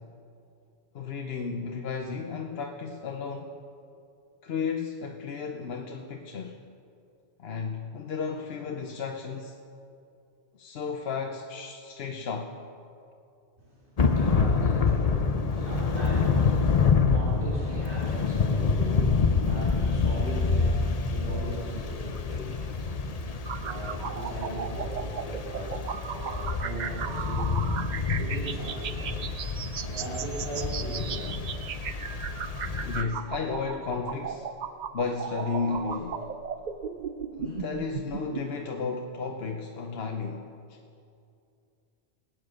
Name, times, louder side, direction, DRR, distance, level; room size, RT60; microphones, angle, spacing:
voice 1, 0.9-3.6 4.4-6.6 7.4-9.6 10.5-12.6 32.8-34.5 34.9-36.3 37.4-40.8, left 5 dB, 70° left, 3 dB, 1.0 m, -33 dB
voice 2, 13.6-27.9 28.1-31.5 33.3-33.4 36.7-37.7, right 1 dB, 80° right, -7 dB, 3.8 m, -39 dB
Thunder / Rain, 14.0-33.0, left 5 dB, 40° left, 0.7 m, -27 dB
sound 1, 23.4-38.4, right 7 dB, 50° right, 0.6 m, -36 dB
19.0 x 9.0 x 6.4 m, 2.5 s
omnidirectional pair, 1.1 m